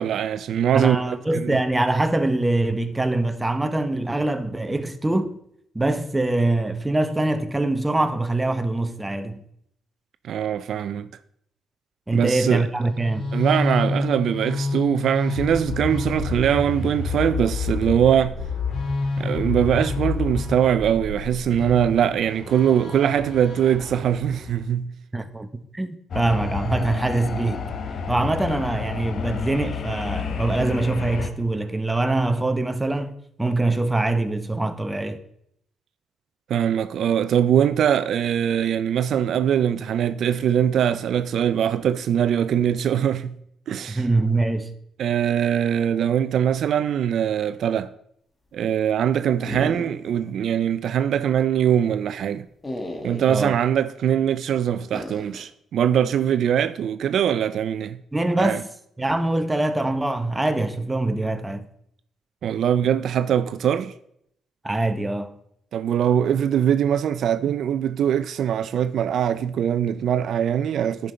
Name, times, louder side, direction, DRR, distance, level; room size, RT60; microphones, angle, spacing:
voice 1, 0.0-1.6 10.2-11.1 12.1-12.7 13.3-18.4 19.2-24.9 36.5-43.3 43.7-44.0 45.0-47.9 48.5-52.5 53.0-58.0 58.4-58.6 62.4-63.9 65.7-71.1, right 9 dB, 65° right, 0.3 m, -22 dB
voice 2, 0.7-5.4 5.7-9.4 12.1-13.3 25.1-27.6 28.1-35.2 43.9-44.7 53.3-53.6 58.1-58.7 59.0-61.7 64.6-65.3, right 2 dB, 15° right, 0.7 m, -24 dB
sound 1, 12.8-24.6, left 3 dB, 70° left, 3.3 m, -28 dB
sound 2, 26.1-31.3, left 5 dB, 55° left, 0.9 m, -30 dB
sound 3, 49.5-50.3 50.6-50.7 52.6-53.4 54.9-55.4, left 1 dB, 20° left, 1.4 m, -34 dB
10.5 x 5.3 x 4.3 m
cardioid pair, 90°, 0 cm